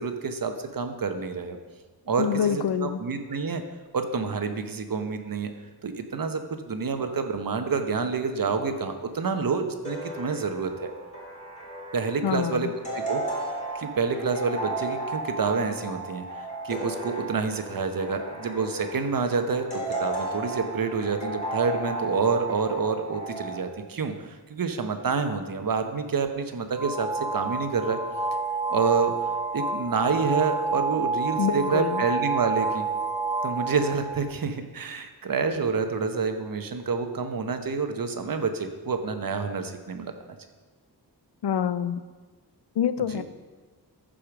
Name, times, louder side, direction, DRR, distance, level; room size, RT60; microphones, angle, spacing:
voice 1, 0.0-1.6 2.1-3.6 3.9-5.5 5.8-10.9 11.9-28.0 28.7-32.9 33.4-40.1 43.1-43.2, right 5 dB, 55° right, 7 dB, 1.0 m, -28 dB
voice 2, 2.2-3.0 12.2-12.7 31.4-32.0 41.4-42.0 42.8-43.2, left 8 dB, 80° left, 13 dB, 0.6 m, -26 dB
sound 1, 9.8-23.6, right 2 dB, 20° left, 3.1 m, -34 dB
sound 2, 26.8-34.3, right 4 dB, 5° right, 0.5 m, -29 dB
14.0 x 5.1 x 6.0 m, 1.3 s
wide cardioid pair, 110°, 40 cm